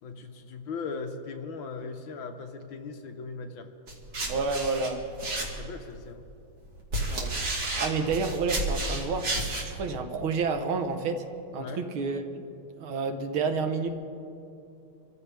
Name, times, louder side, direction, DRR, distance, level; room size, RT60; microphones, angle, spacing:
voice 1, 0.0-3.7 5.4-6.3 11.6-11.8, left 4 dB, 75° left, 5 dB, 1.9 m, -38 dB
sound 1, 3.9-5.9 6.6-9.7, right 2 dB, 55° right, 2.7 m, -31 dB
voice 2, 4.3-5.0 7.1-7.4 7.8-11.2 11.5-12.5 12.8-13.9, right 4 dB, 80° right, 6 dB, 2.0 m, -30 dB
27.0 x 14.5 x 3.4 m, 2.7 s
omnidirectional pair, 2.3 m